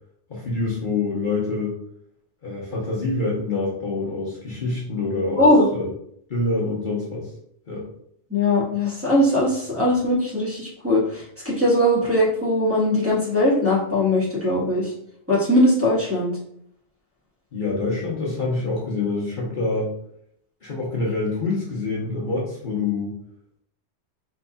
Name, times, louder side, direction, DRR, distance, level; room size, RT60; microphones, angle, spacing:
voice 1, 0.3-1.7 2.4-5.9 6.3-7.3 7.7-7.8 17.5-19.9 20.6-23.2, left 3 dB, 50° left, -5 dB, 1.0 m, -26 dB
voice 2, 5.4-5.7 8.3-14.9 15.3-16.3, left 1 dB, 10° right, -9 dB, 1.6 m, -20 dB
4.4 x 4.1 x 2.3 m, 0.69 s
omnidirectional pair, 1.2 m